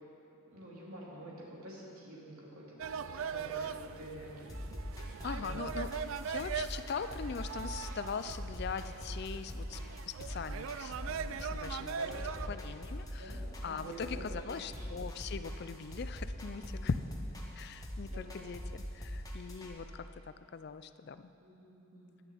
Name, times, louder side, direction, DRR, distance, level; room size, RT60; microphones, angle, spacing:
voice 1, 0.5-4.6 5.2-5.6 11.9-12.5 13.1-13.4 13.7-15.0 16.5-16.9 18.0-18.4 21.4-22.2, right 1 dB, 85° right, -5 dB, 3.1 m, -49 dB
sound 1, 2.8-12.5, right 6 dB, 70° right, 0.4 m, -41 dB
sound 2, 4.5-19.7, equal, 15° left, 1.2 m, -43 dB
voice 2, 5.2-5.9 6.2-9.8 10.1-12.2 12.5-17.0 17.6-21.3, left 5 dB, 50° left, 12 dB, 0.4 m, -41 dB
11.0 x 7.1 x 8.5 m, 2.9 s
head